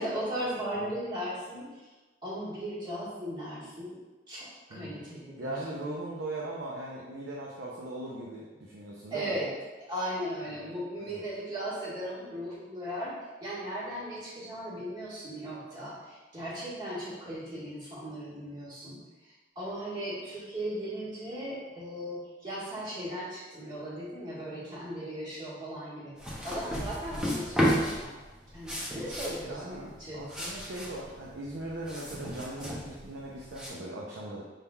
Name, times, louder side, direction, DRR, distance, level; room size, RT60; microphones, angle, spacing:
voice 1, 0.0-1.9 2.2-4.0 4.3-5.6 9.1-9.5 9.8-13.1 13.4-26.1 26.4-28.1 28.5-30.2, equal, 25° right, -9 dB, 1.5 m, -37 dB
voice 2, 4.7-5.0 5.4-9.4 11.0-11.2 29.4-29.9 30.1-34.4, right 1 dB, 85° right, -3 dB, 0.5 m, -39 dB
sound 1, 26.2-33.7, equal, 5° right, 0.7 m, -33 dB
5.6 x 3.5 x 2.3 m, 1.2 s
head